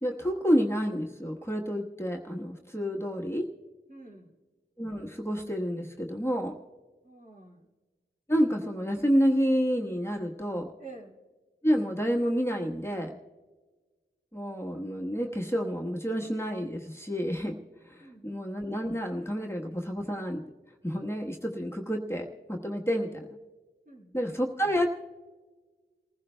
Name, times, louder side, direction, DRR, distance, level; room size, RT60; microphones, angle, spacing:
voice 1, 0.0-3.5 4.8-6.5 8.3-10.7 11.6-13.2 14.3-17.6 17.8-20.4 20.8-23.2 24.1-24.9, equal, 10° left, -1 dB, 1.2 m, -29 dB
voice 2, 3.9-4.4 7.0-7.7 10.8-11.1 18.0-18.4 23.9-24.3, right 3 dB, 40° right, -2 dB, 2.5 m, -49 dB
28.5 x 15.5 x 2.2 m, 1.3 s
wide cardioid pair, 40°, 20 cm